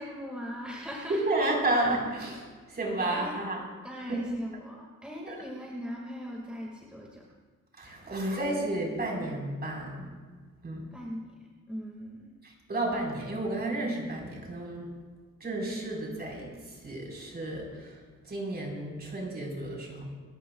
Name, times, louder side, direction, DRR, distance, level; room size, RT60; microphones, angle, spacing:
voice 1, 0.0-1.4 3.1-3.3 3.8-7.2 10.9-11.3 11.7-12.3, equal, 5° right, -2 dB, 1.9 m, -39 dB
voice 2, 1.1-3.6 4.1-4.4 5.3-5.4 7.8-10.1 10.6-10.9 12.4-14.9 15.4-20.1, right 2 dB, 30° right, -1 dB, 4.3 m, -32 dB
26.5 x 14.0 x 2.3 m, 1.4 s
cardioid pair, 130°, 30 cm